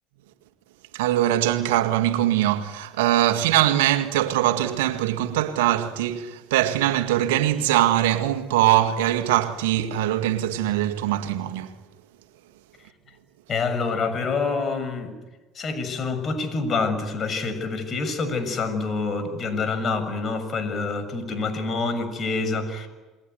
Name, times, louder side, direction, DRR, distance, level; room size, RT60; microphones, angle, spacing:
voice 1, 0.9-11.7, right 13 dB, 75° right, 2.0 m, -22 dB
voice 2, 13.5-15.2 15.5-22.9, left 4 dB, 40° left, 6.7 m, -27 dB
28.5 x 21.5 x 9.5 m
hypercardioid pair, 65°, 0 cm